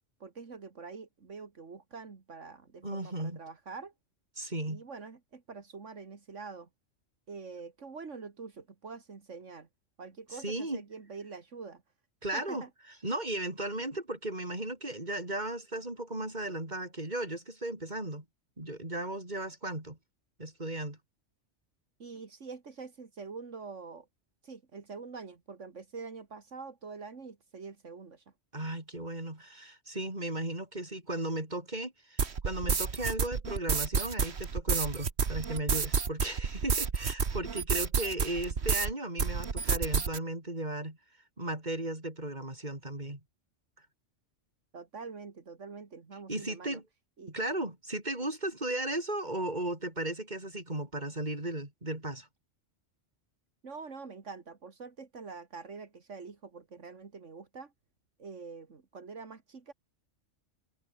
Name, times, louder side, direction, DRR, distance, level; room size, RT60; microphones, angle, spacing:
voice 1, 0.2-3.9 4.7-6.7 7.3-9.7 10.0-11.8 12.3-12.7 22.0-24.1 24.4-28.3 44.7-46.8 47.2-47.3 53.6-57.7 58.2-59.7, right 4 dB, 80° right, 2.4 m, -45 dB
voice 2, 2.8-3.4 4.4-4.8 10.4-10.8 12.2-12.6 13.0-18.2 18.6-20.0 20.4-21.0 28.5-41.0 41.4-43.2 46.3-46.8 47.3-52.3, right 1 dB, 35° right, 5.3 m, -36 dB
sound 1, 32.2-38.9 39.2-40.2, right 5 dB, 60° right, 1.7 m, -30 dB
open air
omnidirectional pair, 1.3 m